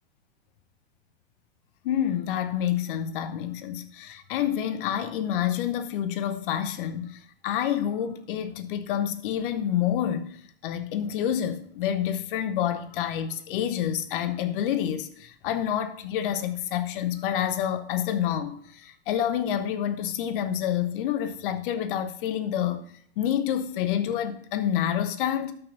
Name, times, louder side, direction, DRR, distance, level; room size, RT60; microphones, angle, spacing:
voice 1, 1.8-22.8 23.2-25.5, left 10 dB, 50° left, 1.1 m, -28 dB
12.5 x 5.9 x 4.0 m
hypercardioid pair, 100°, 33 cm